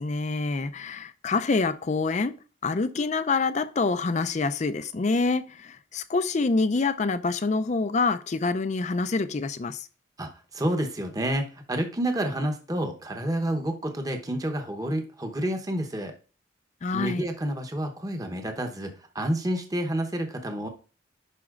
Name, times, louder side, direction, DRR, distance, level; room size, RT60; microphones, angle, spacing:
voice 1, 0.0-2.4 2.6-9.9 16.8-17.2, left 3 dB, 40° left, 0.4 m, -26 dB
voice 2, 10.2-16.1 16.9-20.7, right 1 dB, 20° right, 0.9 m, -29 dB
11.0 x 4.2 x 2.4 m
head